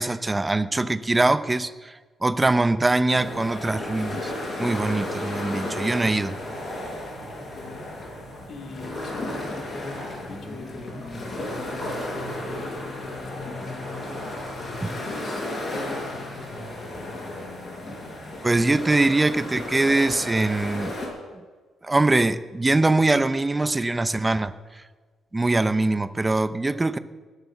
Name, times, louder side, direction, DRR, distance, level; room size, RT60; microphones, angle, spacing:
voice 1, 0.0-4.3 4.6-6.4 14.8-14.9 18.4-20.9 21.8-24.8 25.3-27.0, right 2 dB, 20° right, 14 dB, 0.7 m, -22 dB
sound 1, 3.1-21.1, left 1 dB, 35° left, 5.3 m, -33 dB
voice 2, 7.4-7.9 8.5-14.1 14.5-17.2, left 4 dB, 60° left, 4 dB, 2.5 m, -43 dB
20.0 x 8.1 x 7.2 m, 1.4 s
cardioid pair, 90°, 0 cm